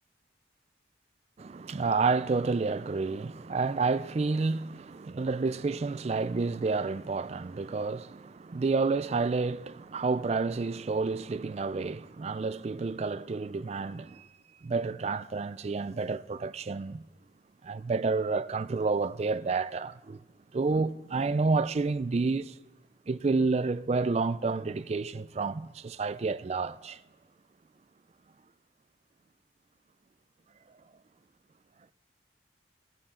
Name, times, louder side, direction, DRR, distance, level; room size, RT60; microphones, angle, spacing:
voice 1, 1.4-14.3 14.6-17.0 17.6-20.2 20.5-22.5 23.1-27.0, right 4 dB, 35° right, 0.3 m, -30 dB
16.0 x 13.0 x 3.7 m
head